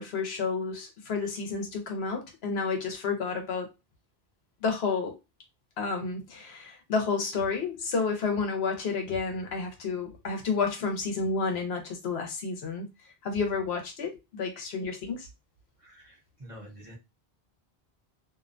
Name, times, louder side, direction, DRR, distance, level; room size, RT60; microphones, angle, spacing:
voice 1, 0.0-3.7 4.6-5.2 5.8-12.9 13.2-15.3, left 4 dB, 75° left, 1.0 m, -30 dB
voice 2, 15.8-17.0, equal, 35° right, 0.7 m, -48 dB
2.6 x 2.1 x 2.5 m
omnidirectional pair, 1.1 m